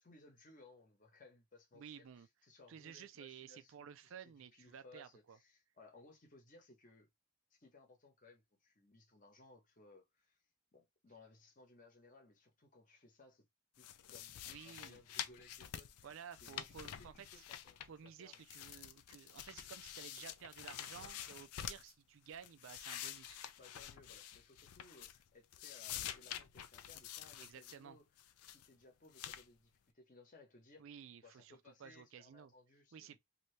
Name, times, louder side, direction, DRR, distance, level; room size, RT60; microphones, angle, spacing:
voice 1, 0.0-7.1 7.6-10.4 10.7-13.4 13.8-18.4 23.6-28.0 28.4-30.8 31.2-33.2, left 2 dB, 35° left, 0.9 m, -63 dB
voice 2, 1.7-2.3 2.7-5.4 14.5-15.0 16.0-17.1 17.9-23.4 27.4-28.0 30.8-32.5 32.9-33.2, right 8 dB, 60° right, 0.4 m, -54 dB
sound 1, 13.8-18.1 18.3-21.9 22.3-25.3 25.5-27.8 28.2-28.7 29.1-29.4, left 10 dB, 85° left, 0.4 m, -48 dB
2.7 x 2.7 x 3.1 m
head